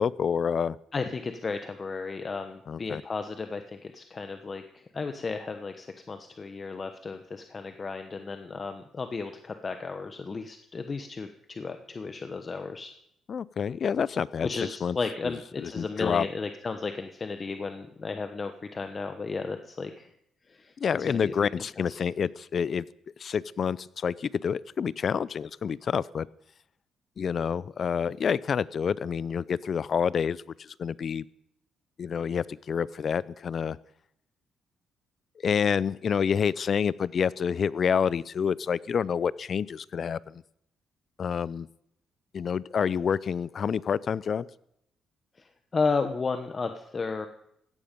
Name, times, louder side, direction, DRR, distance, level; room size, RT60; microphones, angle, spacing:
voice 1, 0.0-0.8 2.7-3.0 13.3-14.5 14.8-15.0 15.2-16.3 20.8-22.9 23.2-26.3 27.2-31.2 32.0-33.8 35.4-40.4 41.2-41.7 42.3-44.5, left 7 dB, 50° left, 21 dB, 0.5 m, -28 dB
voice 2, 0.9-13.0 14.4-20.1 20.5-20.7 21.1-21.3 21.9-22.0 45.4-47.3, left 4 dB, 35° left, 7 dB, 1.0 m, -34 dB
16.5 x 11.5 x 5.3 m, 0.75 s
cardioid pair, 90°, 0 cm